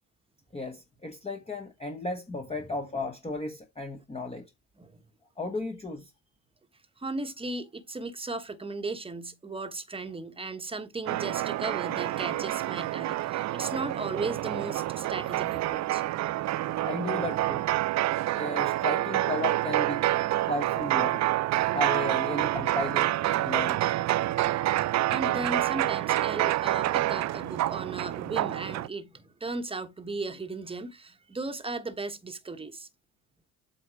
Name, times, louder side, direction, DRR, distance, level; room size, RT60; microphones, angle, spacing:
voice 1, 0.5-4.5 5.4-6.0 16.8-17.6 18.3-20.1 20.5-21.2 21.7-23.8, left 2 dB, 15° left, 1.2 m, -34 dB
voice 2, 7.0-16.0 25.1-32.9, right 3 dB, 15° right, 1.2 m, -36 dB
sound 1, 11.1-28.9, right 15 dB, 45° right, 0.5 m, -28 dB
8.0 x 3.8 x 5.1 m
supercardioid pair, 85°, 41 cm